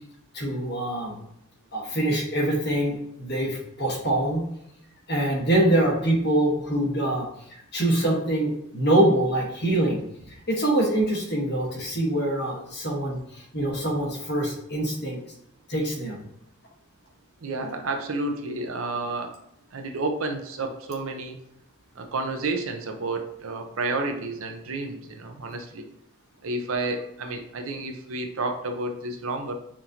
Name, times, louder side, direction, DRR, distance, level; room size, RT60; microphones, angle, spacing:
voice 1, 0.3-1.1 1.7-4.5 5.1-7.3 7.7-10.0 10.3-15.2 15.7-16.2, right 1 dB, 50° left, -3 dB, 1.4 m, -24 dB
voice 2, 17.4-19.3 19.7-21.4 22.0-25.9 26.4-29.5, right 2 dB, 70° right, 5 dB, 0.6 m, -30 dB
5.9 x 2.5 x 2.8 m, 0.77 s
head